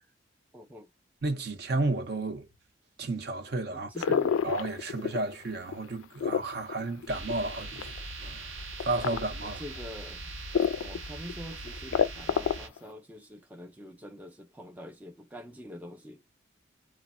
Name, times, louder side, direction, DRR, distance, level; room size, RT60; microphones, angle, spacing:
voice 1, 0.5-0.9 3.7-4.4 9.4-10.3 10.8-16.2, equal, 10° right, 0.3 m, -45 dB
voice 2, 1.2-2.5 3.0-4.2 4.4-9.6, right 2 dB, 55° right, 0.6 m, -33 dB
sound 1, 4.0-5.3 5.7-8.0 8.8-9.2 9.8-9.9 10.5-11.0 11.3-11.4 11.7-12.8, left 7 dB, 90° left, 0.3 m, -27 dB
sound 2, 7.1-12.7, right 2 dB, 90° right, 0.7 m, -41 dB
3.1 x 2.0 x 2.4 m
head